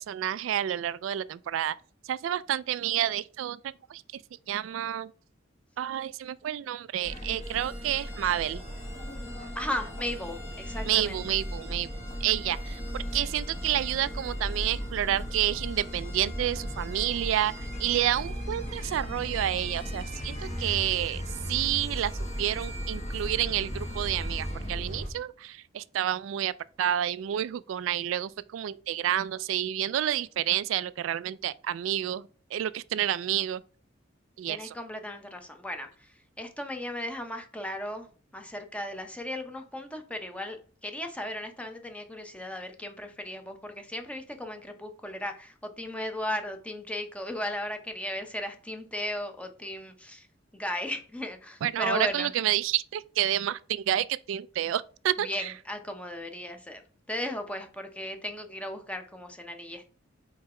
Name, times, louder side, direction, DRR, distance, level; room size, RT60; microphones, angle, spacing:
voice 1, 0.0-1.8 2.0-3.6 3.9-4.2 4.5-5.1 5.8-8.6 10.9-11.9 12.2-12.8 13.1-21.2 21.5-22.1 22.4-26.5 26.8-32.2 32.5-33.6 34.4-34.7 51.6-55.5, right 11 dB, 90° right, 0.3 m, -29 dB
sound 1, 7.0-25.1, equal, 35° left, 1.1 m, -36 dB
voice 2, 9.5-11.2 34.5-38.1 38.3-50.3 50.5-52.3 55.2-59.9, left 1 dB, 5° left, 0.8 m, -36 dB
4.7 x 4.6 x 4.3 m
head